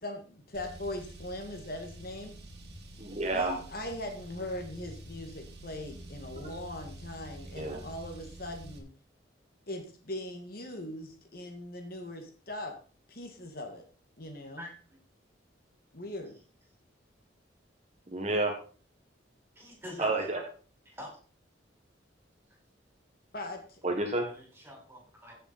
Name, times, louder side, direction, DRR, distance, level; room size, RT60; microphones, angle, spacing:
voice 1, 0.0-2.4 3.3-8.9 9.7-12.7 13.1-13.8 14.2-14.7 15.9-16.4 23.3-23.8, left 1 dB, 50° left, 4 dB, 2.0 m, -40 dB
Car, 0.5-8.8, right 1 dB, 60° right, 2.8 m, -47 dB
voice 2, 3.0-3.5 7.5-7.8 18.1-18.5 20.0-20.4 23.8-24.3, right 2 dB, 35° right, 2 dB, 1.6 m, -29 dB
voice 3, 14.6-15.0 19.6-20.3 20.9-21.2 24.2-25.3, left 1 dB, 10° right, -1 dB, 5.2 m, -44 dB
15.0 x 6.9 x 4.3 m, 0.40 s
head